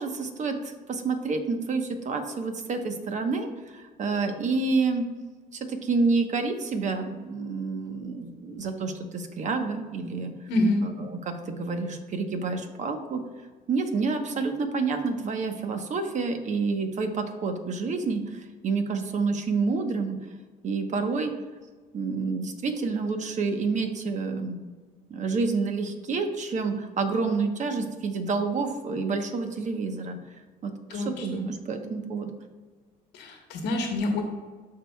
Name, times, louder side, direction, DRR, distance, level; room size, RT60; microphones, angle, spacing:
voice 1, 0.0-5.1 5.5-10.3 10.8-13.2 13.7-20.2 20.6-21.3 21.9-24.6 25.1-30.2 30.6-32.4, right 4 dB, 45° right, 6 dB, 1.1 m, -28 dB
voice 2, 10.5-10.8 30.9-31.3 33.1-34.2, left 2 dB, 85° left, 1 dB, 1.2 m, -26 dB
13.0 x 4.8 x 2.3 m, 1.4 s
cardioid pair, 110°, 17 cm